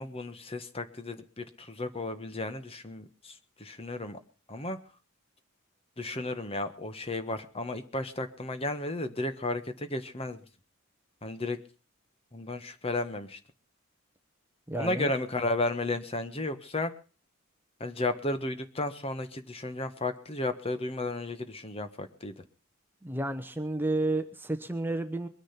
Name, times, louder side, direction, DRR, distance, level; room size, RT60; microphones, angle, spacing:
voice 1, 0.0-4.2 4.5-4.8 6.0-10.4 11.2-11.6 12.3-13.4 14.7-16.9 17.8-22.4, left 2 dB, 30° left, 9 dB, 1.3 m, -33 dB
voice 2, 14.7-15.1 23.0-25.3, right 2 dB, 10° right, 8 dB, 0.9 m, -31 dB
22.0 x 10.0 x 5.8 m, 0.37 s
head